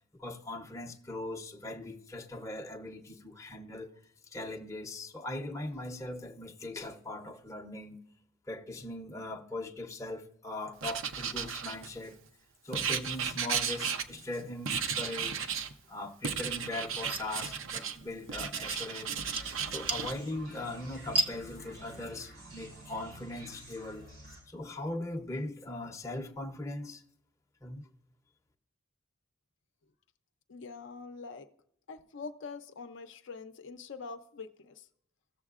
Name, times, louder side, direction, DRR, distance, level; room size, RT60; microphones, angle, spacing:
voice 1, 0.1-3.9 4.3-8.0 8.5-12.2 12.6-15.5 15.9-19.3 19.7-24.1 24.5-27.0 27.6-27.8, left 2 dB, 15° left, 0.6 m, -40 dB
Writing, 10.8-12.1 12.7-14.4 14.7-15.7 16.2-18.0 18.3-20.1, right 7 dB, 65° right, 0.6 m, -34 dB
sound 1, 16.9-22.1, right 2 dB, 25° right, 0.6 m, -38 dB
sound 2, 19.1-24.4, right 1 dB, 85° right, 4.0 m, -50 dB
voice 2, 30.5-31.5 31.9-34.9, left 4 dB, 60° left, 0.5 m, -44 dB
15.5 x 7.2 x 2.4 m
head